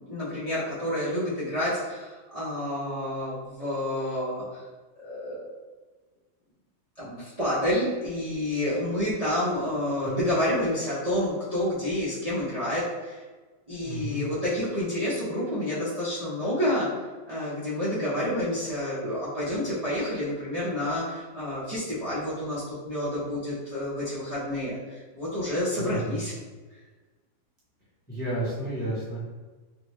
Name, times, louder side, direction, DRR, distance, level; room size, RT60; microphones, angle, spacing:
voice 1, 0.0-4.6 5.0-5.6 7.0-13.2 13.7-16.9 17.3-26.3, left 1 dB, 35° right, -11 dB, 0.6 m, -29 dB
voice 2, 13.8-14.3 25.8-26.2 28.1-29.3, right 1 dB, 10° left, -9 dB, 0.6 m, -32 dB
3.7 x 2.2 x 3.1 m, 1.3 s
omnidirectional pair, 1.7 m